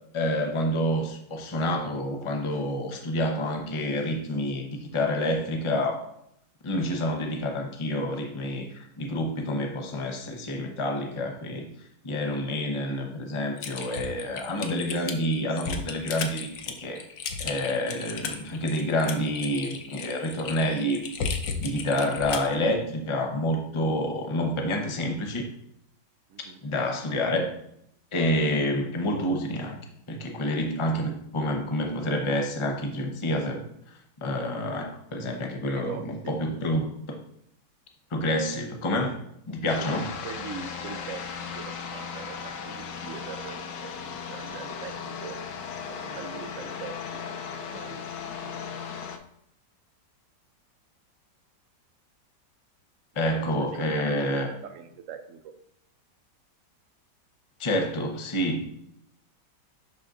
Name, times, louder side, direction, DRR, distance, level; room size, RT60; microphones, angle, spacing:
voice 1, 0.1-6.1 6.6-11.7 12.0-17.0 17.4-21.0 21.6-25.5 26.6-27.5 28.1-29.8 30.1-33.6 34.2-37.2 38.1-39.1 39.5-40.1 53.2-54.5 57.6-58.7, left 1 dB, 40° left, 2 dB, 0.4 m, -28 dB
Typing, 13.6-22.5, left 5 dB, 60° left, 0.9 m, -35 dB
voice 2, 35.6-36.3 39.6-45.4 45.9-47.2 47.5-48.0 48.4-48.7 53.3-55.5, right 6 dB, 65° right, 8 dB, 0.8 m, -42 dB
sound 1, 39.7-49.2, left 6 dB, 80° left, 1.3 m, -37 dB
11.0 x 3.9 x 2.5 m, 0.73 s
omnidirectional pair, 1.9 m